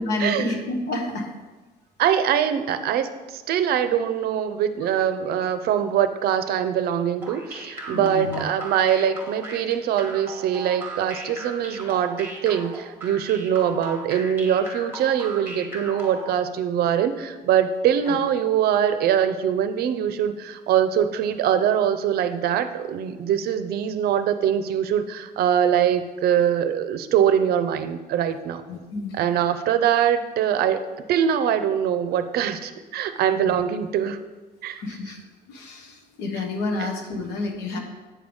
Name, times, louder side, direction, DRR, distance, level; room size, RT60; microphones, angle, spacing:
voice 1, 0.0-1.3 2.5-2.6 7.9-8.4 18.1-18.2 28.7-29.2 33.4-33.6 34.8-35.2 35.5-37.8, left 2 dB, 85° left, 3 dB, 1.2 m, -29 dB
voice 2, 2.0-28.6 29.1-30.8 31.1-34.2 34.6-34.8, right 9 dB, 70° right, 10 dB, 0.5 m, -23 dB
sound 1, 7.2-16.4, right 2 dB, 15° right, 1.2 m, -37 dB
8.5 x 3.5 x 5.3 m, 1.3 s
cardioid pair, 110°, 17 cm